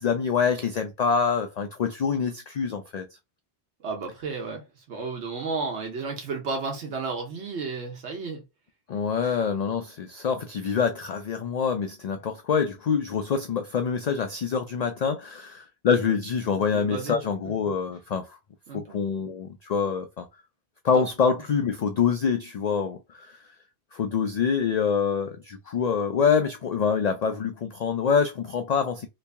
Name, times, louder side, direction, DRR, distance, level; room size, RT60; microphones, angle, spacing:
voice 1, 0.0-3.1 8.9-18.4 18.7-20.3 20.8-23.4 23.9-29.1, left 6 dB, 55° left, 0.4 m, -26 dB
voice 2, 3.8-4.6 4.9-8.4 9.2-9.3 16.7-17.2 18.7-19.0 20.9-21.0, right 4 dB, 90° right, 1.3 m, -32 dB
3.1 x 2.6 x 3.4 m
omnidirectional pair, 1.1 m